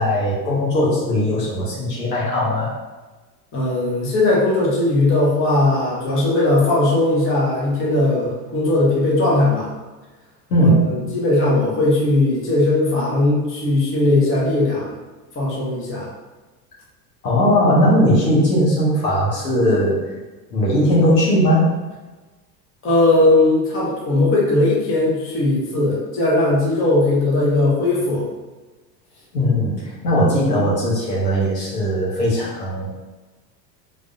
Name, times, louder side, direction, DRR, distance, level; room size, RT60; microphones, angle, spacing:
voice 1, 0.0-2.7 10.5-11.2 17.2-20.1 20.5-21.7 29.3-32.9, equal, 70° left, -6 dB, 1.4 m, -18 dB
voice 2, 3.5-9.7 10.6-14.9 15.3-16.1 22.8-28.2, left 2 dB, 25° left, -6 dB, 1.3 m, -18 dB
3.9 x 3.3 x 2.6 m, 1.2 s
figure-of-eight pair, 80°, 50 cm